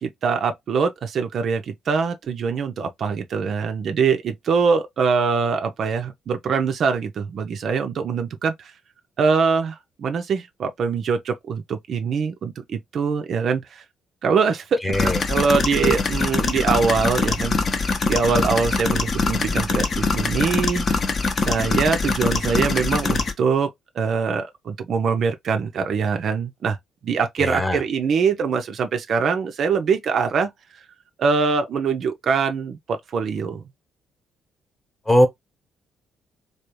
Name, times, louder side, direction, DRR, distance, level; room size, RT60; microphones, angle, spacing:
voice 1, 0.0-8.7 9.2-13.8 14.2-21.0 21.4-23.7 24.0-26.8 27.0-30.5 31.2-33.6, right 5 dB, 50° right, 0.4 m, -23 dB
voice 2, 14.8-15.2 27.4-27.8 35.1-35.3, left 1 dB, 15° left, 1.0 m, -19 dB
sound 1, 14.9-23.3, left 4 dB, 40° left, 0.7 m, -23 dB
3.4 x 2.4 x 2.9 m
figure-of-eight pair, 45°, 0 cm